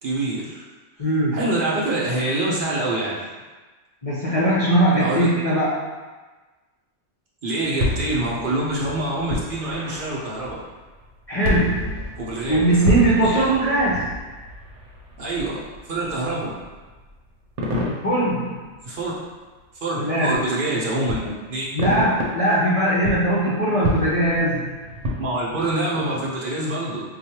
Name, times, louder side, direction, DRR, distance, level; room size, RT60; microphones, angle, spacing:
voice 1, 0.0-0.6 1.0-3.2 5.0-5.2 7.4-10.6 12.2-12.7 13.2-13.5 15.2-15.5 15.9-16.5 18.8-19.1 19.8-21.7 25.2-27.0, right 2 dB, 55° right, -5 dB, 0.8 m, -25 dB
voice 2, 1.0-1.4 4.0-5.8 11.3-11.9 12.5-14.2 17.8-18.6 20.0-20.4 21.7-24.7, right 1 dB, 40° left, -7 dB, 0.5 m, -20 dB
sound 1, 7.6-19.6 20.3-20.4 21.0-22.6 23.0-25.8, left 1 dB, 75° right, 1.0 m, -30 dB
4.8 x 2.3 x 2.8 m, 1.3 s
omnidirectional pair, 1.2 m